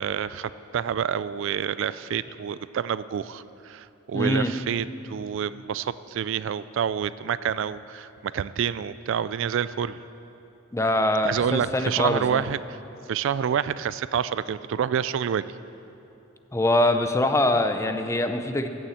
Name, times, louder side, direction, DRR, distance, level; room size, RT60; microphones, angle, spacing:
voice 1, 0.0-10.0 11.2-12.8 13.1-15.5, right 8 dB, 65° right, 16 dB, 0.3 m, -28 dB
voice 2, 4.1-4.5 10.7-12.4 16.5-18.7, left 1 dB, 15° left, 8 dB, 0.6 m, -23 dB
14.5 x 7.1 x 7.9 m, 2.9 s
head